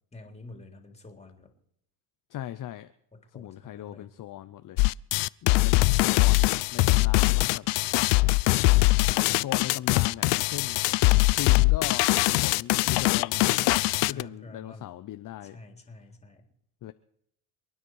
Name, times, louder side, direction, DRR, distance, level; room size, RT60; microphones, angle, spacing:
voice 1, 0.1-1.5 3.1-4.2 14.1-15.0 15.4-16.5, left 2 dB, 15° left, 4 dB, 3.6 m, -48 dB
voice 2, 2.3-2.9 3.3-4.8 5.4-7.7 9.4-10.8 11.3-12.1 12.4-13.7 14.1-15.6 16.8-16.9, left 12 dB, 45° left, 11 dB, 0.8 m, -38 dB
sound 1, 4.8-14.2, left 24 dB, 70° left, 0.5 m, -22 dB
28.0 x 10.0 x 4.8 m, 0.73 s
supercardioid pair, 95°, 45 cm